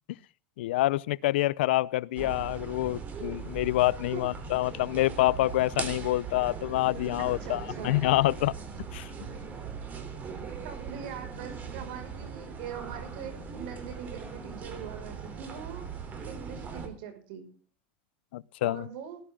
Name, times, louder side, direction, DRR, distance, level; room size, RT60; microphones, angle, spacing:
voice 1, 0.6-8.6 8.9-9.1 18.3-18.9, left 17 dB, 85° left, 0.6 m, -27 dB
sound 1, 2.2-16.9, right 5 dB, 30° right, 3.5 m, -40 dB
sound 2, 6.5-9.7, right 2 dB, 10° left, 7.2 m, -51 dB
voice 2, 7.2-8.1 10.6-15.9 16.2-17.5 18.6-19.2, right 8 dB, 70° right, 5.9 m, -42 dB
19.0 x 11.5 x 3.8 m
supercardioid pair, 145°, 6 cm